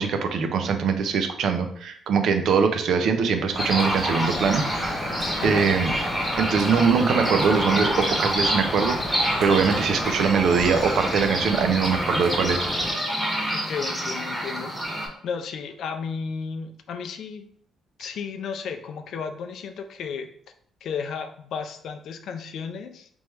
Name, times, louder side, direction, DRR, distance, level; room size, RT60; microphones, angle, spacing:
voice 1, 0.0-4.6 5.4-5.9 6.4-12.7, right 6 dB, 70° right, 7 dB, 0.5 m, -22 dB
Drip, 3.5-12.9, left 1 dB, 35° left, 1.4 m, -33 dB
sound 1, 3.6-15.1, equal, 15° right, 1.0 m, -27 dB
voice 2, 5.4-5.7 13.5-17.5 18.0-20.3 20.8-23.1, left 6 dB, 70° left, 7 dB, 0.4 m, -33 dB
3.4 x 3.2 x 3.1 m, 0.62 s
cardioid pair, 90°, 0 cm